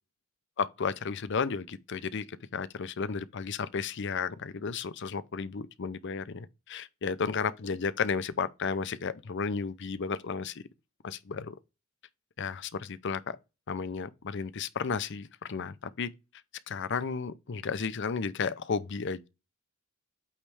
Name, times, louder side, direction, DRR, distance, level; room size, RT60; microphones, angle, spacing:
voice 1, 0.6-2.3 2.5-10.6 11.0-11.5 12.4-13.4 13.7-16.1 16.7-19.3, left 5 dB, 55° left, 0.6 m, -33 dB
8.7 x 3.2 x 4.7 m
head